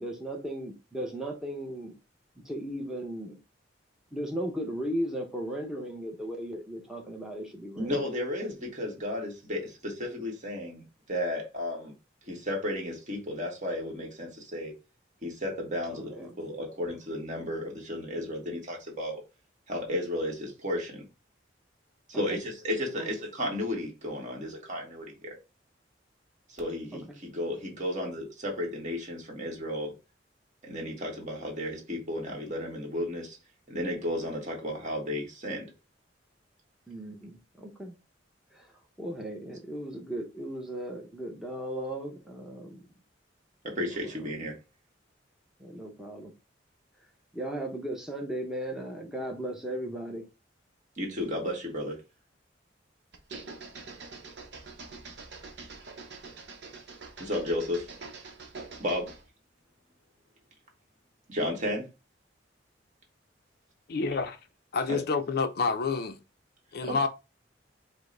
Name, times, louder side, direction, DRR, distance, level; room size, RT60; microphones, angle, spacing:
voice 1, 0.0-2.0 2.4-3.4 4.1-8.1 15.9-16.4 22.1-22.4 23.0-23.2 26.9-27.0 36.9-38.0 38.5-38.7 39.0-42.9 43.7-44.1 45.6-46.3 47.3-50.3, right 1 dB, 5° right, 0.7 m, -36 dB
voice 2, 7.8-11.9 12.3-14.7 15.2-19.2 19.7-21.0 22.1-25.4 26.5-29.9 30.6-33.4 33.7-35.7 43.6-44.6 51.0-52.0 57.2-57.9 58.8-59.1 61.3-61.9 64.9-65.0 66.8-67.0, left 1 dB, 40° right, 1.5 m, -33 dB
sound 1, 53.1-59.3, right 4 dB, 65° right, 0.9 m, -45 dB
voice 3, 63.9-64.4 64.7-66.2 66.7-67.1, left 4 dB, 60° left, 0.5 m, -28 dB
5.1 x 2.1 x 3.8 m
head